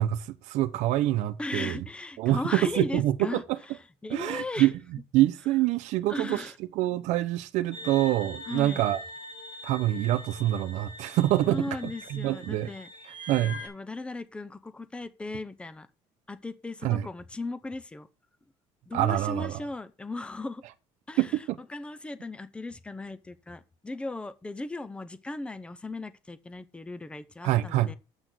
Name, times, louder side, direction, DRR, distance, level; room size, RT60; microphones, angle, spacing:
voice 1, 0.0-1.8 2.2-3.4 4.1-4.7 5.1-9.0 9.6-12.7 13.3-13.6 16.8-17.1 18.9-19.6 21.2-21.6 27.4-27.9, right 14 dB, 70° right, 0.9 m, -26 dB
voice 2, 1.4-3.4 4.0-4.7 6.1-6.5 8.5-8.8 11.5-12.9 13.6-15.9 16.3-18.1 18.9-20.6 21.1-28.0, left 2 dB, 10° left, 0.7 m, -37 dB
sound 1, 7.7-13.7, left 1 dB, 45° left, 3.7 m, -43 dB
8.1 x 6.2 x 6.2 m
cardioid pair, 160°, 12 cm